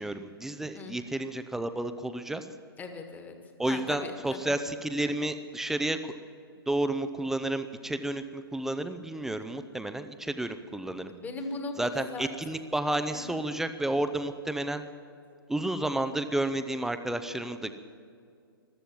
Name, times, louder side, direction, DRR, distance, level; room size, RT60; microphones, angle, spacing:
voice 1, 0.0-2.5 3.6-6.1 6.7-11.1 11.8-14.8 15.5-17.8, right 1 dB, 5° right, 10 dB, 0.6 m, -31 dB
voice 2, 2.8-3.4 3.6-4.5 11.1-12.3 13.1-13.4, left 3 dB, 15° left, 6 dB, 1.5 m, -39 dB
14.5 x 12.5 x 7.5 m, 2.3 s
figure-of-eight pair, 120°, 13 cm